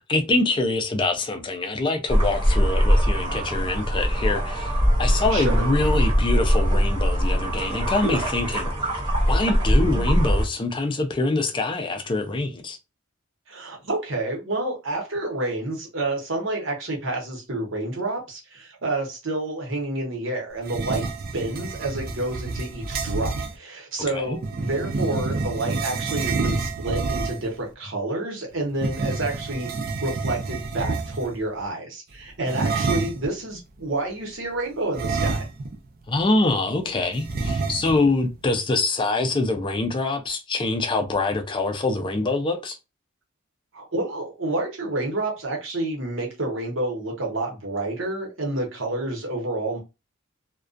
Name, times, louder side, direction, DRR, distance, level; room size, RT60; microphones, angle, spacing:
voice 1, 0.1-4.7 5.0-8.7 9.3-12.8 24.1-24.4 36.1-42.8, left 2 dB, 25° left, 0.4 m, -24 dB
sound 1, 2.1-10.4, equal, 25° right, 0.9 m, -22 dB
voice 2, 5.3-5.7 9.8-10.1 13.5-21.0 21.3-29.7 30.0-35.5 43.7-49.8, right 2 dB, 70° right, 1.0 m, -29 dB
sound 2, 20.6-23.6 24.4-27.6 28.7-31.4 32.5-33.3 34.9-35.9 36.2-36.3 37.2-38.1, right 3 dB, 45° right, 0.4 m, -28 dB
2.3 x 2.2 x 2.4 m
head